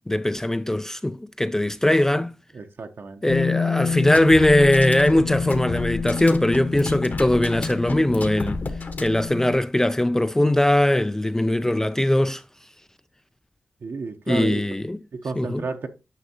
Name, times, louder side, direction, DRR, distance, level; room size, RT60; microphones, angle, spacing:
voice 1, 0.1-2.4 3.2-8.6 9.0-12.4 14.3-15.0 15.4-15.6, left 1 dB, 10° left, 0.3 m, -20 dB
voice 2, 2.5-3.4 13.8-14.5 15.1-15.9, right 4 dB, 60° right, 0.8 m, -32 dB
Bass guitar, 3.3-9.5, left 6 dB, 75° left, 0.5 m, -28 dB
sound 1, 3.9-9.3, left 2 dB, 45° left, 1.1 m, -33 dB
9.6 x 6.1 x 2.8 m
wide cardioid pair, 130°, 4 cm